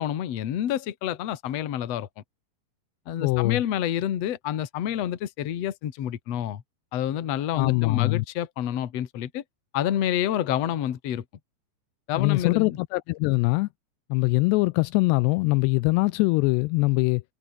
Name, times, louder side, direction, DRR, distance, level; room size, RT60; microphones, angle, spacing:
voice 1, 0.0-2.2 3.1-6.6 6.9-9.4 9.7-11.2 12.1-12.8, left 11 dB, 55° left, 2.0 m, -28 dB
voice 2, 3.2-3.6 7.5-8.3 12.2-13.7 14.1-17.2, left 24 dB, 85° left, 2.6 m, -22 dB
omnidirectional pair, 5.0 m